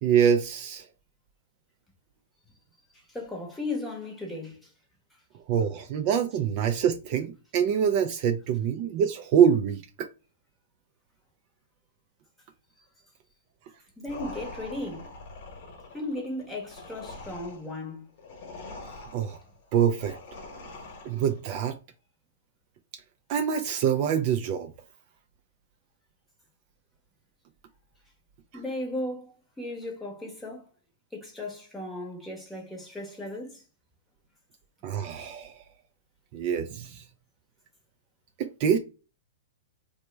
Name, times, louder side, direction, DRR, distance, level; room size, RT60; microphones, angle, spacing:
voice 1, 0.0-0.9 5.5-10.1 19.1-19.4 19.7-20.2 21.0-21.8 23.3-24.7 28.5-28.6 34.8-35.6 36.3-37.0 38.4-38.8, right 8 dB, 40° right, 0.3 m, -25 dB
voice 2, 2.9-4.7 14.0-15.1 15.9-18.1 28.5-30.7 31.1-33.6, left 2 dB, 5° left, 0.9 m, -36 dB
sound 1, 14.1-21.5, left 2 dB, 50° left, 1.0 m, -44 dB
3.1 x 2.1 x 3.2 m
hypercardioid pair, 145°, 0 cm